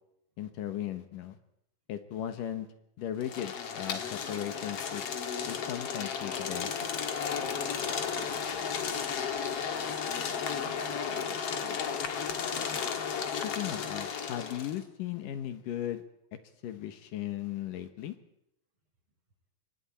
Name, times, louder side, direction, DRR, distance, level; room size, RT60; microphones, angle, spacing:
voice 1, 0.4-1.4 1.9-2.7 3.0-5.0 5.5-6.7 13.4-16.0 16.6-18.2, left 11 dB, 70° left, 9 dB, 2.8 m, -37 dB
sound 1, 3.2-14.8, left 7 dB, 50° left, 2.2 m, -34 dB
voice 2, 7.8-8.8 9.1-12.4, right 3 dB, 40° right, 2 dB, 5.6 m, -51 dB
27.5 x 23.5 x 4.4 m, 0.77 s
omnidirectional pair, 4.2 m